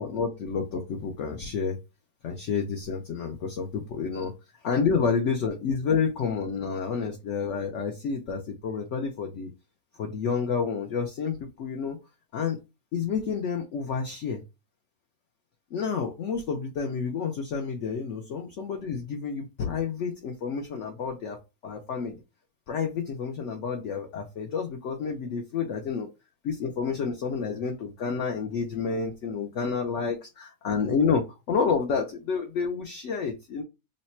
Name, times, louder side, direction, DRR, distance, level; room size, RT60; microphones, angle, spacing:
voice 1, 0.0-1.8 2.2-4.3 4.6-9.5 10.0-12.0 12.3-12.6 12.9-14.4 15.7-22.2 22.7-26.1 26.4-33.6, left 5 dB, 65° left, 3 dB, 0.8 m, -29 dB
3.2 x 2.1 x 4.1 m, 0.25 s
omnidirectional pair, 1.7 m